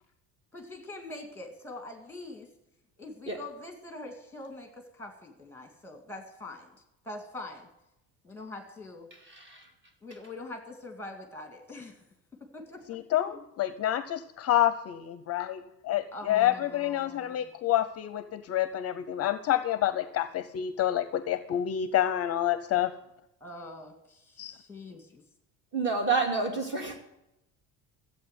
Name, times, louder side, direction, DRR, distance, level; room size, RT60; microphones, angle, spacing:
voice 1, 0.5-2.5 3.0-6.7 7.0-7.7 8.2-9.1 10.0-12.0 12.4-13.0 13.3-13.4 16.1-17.5 23.4-25.2, left 2 dB, 5° left, 4 dB, 2.0 m, -44 dB
voice 2, 9.1-9.7 25.7-27.0, right 4 dB, 30° right, 3 dB, 2.7 m, -29 dB
voice 3, 12.9-22.9 24.4-24.5, left 12 dB, 40° left, 13 dB, 0.6 m, -28 dB
14.5 x 8.4 x 8.0 m, 0.88 s
cardioid pair, 175°, 37 cm